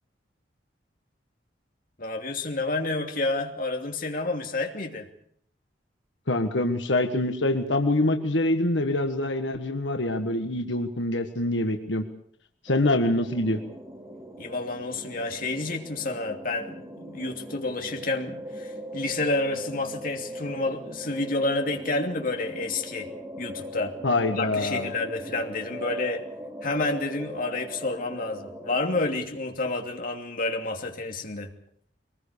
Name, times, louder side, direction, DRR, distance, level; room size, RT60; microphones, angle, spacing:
voice 1, 2.0-5.1 14.4-23.1 23.4-24.0 24.3-26.2 26.6-31.5, left 2 dB, 50° left, 3 dB, 2.9 m, -29 dB
voice 2, 6.3-12.0 12.6-13.6 24.0-24.9, left 1 dB, 85° left, 5 dB, 1.6 m, -25 dB
sound 1, 12.7-29.2, equal, 15° right, 3.4 m, -40 dB
23.5 x 20.0 x 6.9 m, 0.65 s
head